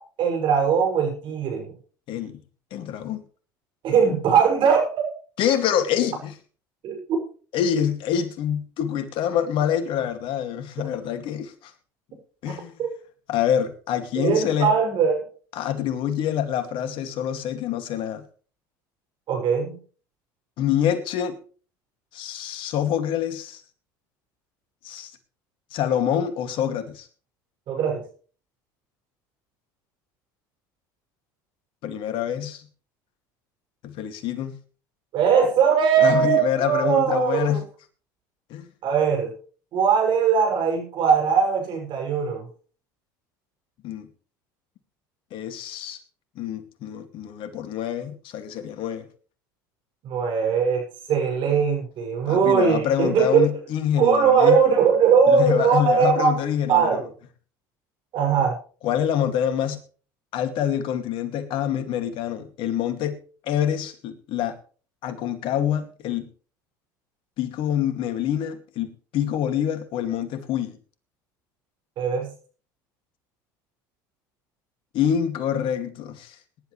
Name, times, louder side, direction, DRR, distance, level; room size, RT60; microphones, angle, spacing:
voice 1, 0.2-1.7 3.8-5.1 6.8-7.0 12.8-12.9 14.2-15.3 19.3-19.8 27.7-28.0 35.1-37.6 38.8-39.3 39.7-42.5 50.0-53.5 54.0-56.4 56.7-57.1 58.1-58.6 72.0-72.3, right 6 dB, 55° right, 6.6 m, -20 dB
voice 2, 2.1-2.4 2.7-3.2 5.4-6.3 7.5-11.7 12.4-12.8 13.3-14.7 15.5-18.2 20.6-21.4 22.1-23.6 24.8-25.1 25.7-27.1 31.8-32.7 33.8-34.6 36.0-37.6 38.5-38.7 43.8-44.1 45.3-46.0 46.4-49.1 52.3-54.6 55.3-57.0 58.8-59.8 60.3-63.2 63.4-64.6 65.0-66.3 67.4-70.8 74.9-76.4, left 9 dB, 60° left, 2.4 m, -26 dB
21.5 x 11.0 x 3.3 m
hypercardioid pair, 75°, 10 cm